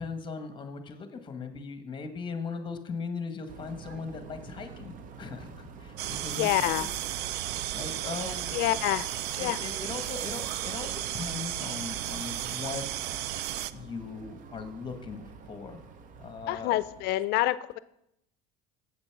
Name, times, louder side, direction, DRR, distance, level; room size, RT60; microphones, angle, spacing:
voice 1, 0.0-6.5 6.8-6.9 7.7-8.6 9.4-12.9 13.7-15.8 16.2-16.8, left 4 dB, 25° left, 8 dB, 1.2 m, -39 dB
sound 1, 3.5-17.1, right 5 dB, 45° right, 0.9 m, -48 dB
sound 2, 6.0-13.7, right 13 dB, 65° right, 0.5 m, -34 dB
voice 2, 6.3-6.9 8.5-9.1 9.4-9.6 16.5-17.8, left 16 dB, 65° left, 16 dB, 0.4 m, -27 dB
7.9 x 6.8 x 5.8 m, 0.80 s
cardioid pair, 120°, 18 cm